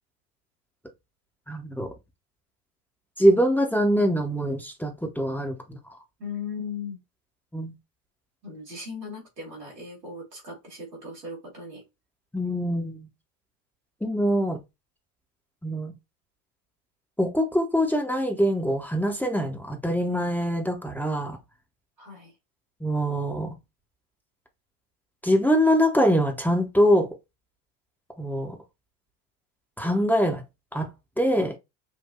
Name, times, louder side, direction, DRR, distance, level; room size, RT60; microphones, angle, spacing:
voice 1, 1.5-1.9 3.2-5.8 7.5-7.7 12.3-13.0 14.0-14.6 15.6-15.9 17.2-21.4 22.8-23.5 25.2-27.1 28.2-28.6 29.8-30.4 30.7-30.9 31.2-31.5, equal, 5° left, 0.9 m, -23 dB
voice 2, 6.2-7.0 8.4-11.8 22.0-22.3, left 4 dB, 90° right, 2.8 m, -38 dB
5.7 x 2.5 x 2.4 m
hypercardioid pair, 75°, 49 cm